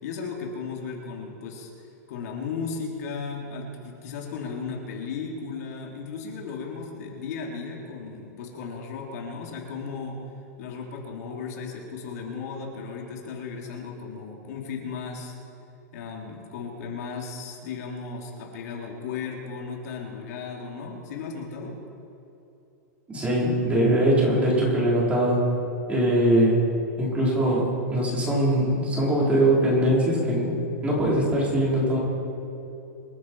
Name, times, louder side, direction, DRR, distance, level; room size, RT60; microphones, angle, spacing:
voice 1, 0.0-1.7 2.1-10.2 10.6-15.3 15.9-21.7, left 5 dB, 65° left, -1 dB, 3.3 m, -35 dB
voice 2, 23.1-25.4 25.9-26.6 27.0-32.0, right 1 dB, 15° right, -5 dB, 4.7 m, -22 dB
26.5 x 10.0 x 4.8 m, 2.9 s
supercardioid pair, 155°, 9 cm